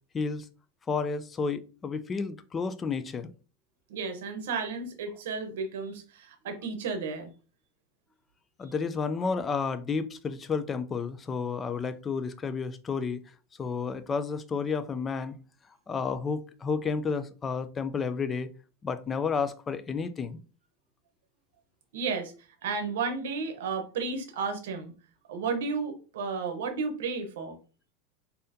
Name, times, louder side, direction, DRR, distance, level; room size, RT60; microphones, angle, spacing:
voice 1, 0.1-0.5 0.9-3.3 8.6-13.2 13.6-15.4 15.9-18.5 18.8-20.4, left 5 dB, 20° left, 0.3 m, -31 dB
voice 2, 3.9-7.3 8.6-8.7 21.9-24.9 25.3-27.6, right 4 dB, 80° right, 0.8 m, -33 dB
4.1 x 2.7 x 2.6 m
supercardioid pair, 145°, 0 cm